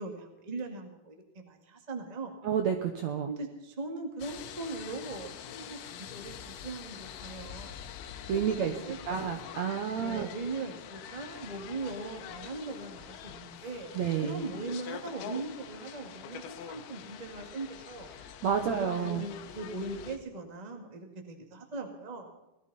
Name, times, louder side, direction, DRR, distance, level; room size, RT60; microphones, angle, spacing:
voice 1, 0.0-2.4 3.3-7.7 8.3-9.4 10.0-18.1 18.6-22.3, right 3 dB, 20° right, 3 dB, 1.2 m, -40 dB
voice 2, 2.4-3.3 8.3-8.7 9.1-10.3 14.0-14.4 18.4-19.3, right 7 dB, 70° right, 5 dB, 1.8 m, -30 dB
sound 1, 4.2-20.2, left 9 dB, 85° left, 2.9 m, -45 dB
19.5 x 13.5 x 4.1 m, 0.95 s
omnidirectional pair, 4.3 m